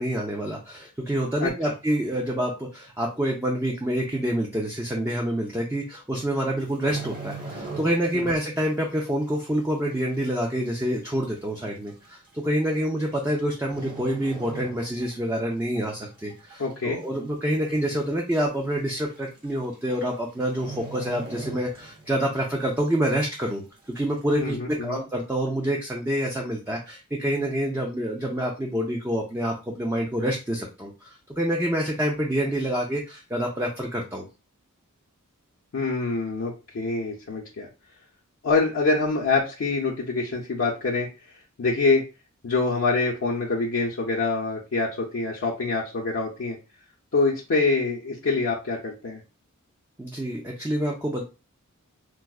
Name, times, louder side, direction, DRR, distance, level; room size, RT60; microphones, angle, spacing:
voice 1, 0.0-34.2 50.0-51.2, right 1 dB, 10° right, -1 dB, 0.4 m, -27 dB
voice 2, 1.4-1.7 8.1-8.3 16.6-17.0 24.4-25.0 35.7-37.7 38.4-42.0 42.4-46.6 47.1-49.2, left 3 dB, 60° left, -1 dB, 0.5 m, -25 dB
sound 1, 6.6-8.3 8.6-8.9 9.4-9.5 10.4-10.5 10.7-10.8 11.7-11.9 13.0-13.4 13.7-15.2 15.6-15.8 16.3-16.8 17.2-17.3 17.5-17.6 18.0-18.1 19.1-19.2 19.4-19.7 20.0-20.1 20.5-22.2 22.5-22.6, right 3 dB, 40° right, 0.9 m, -39 dB
4.6 x 2.0 x 2.3 m, 0.30 s
head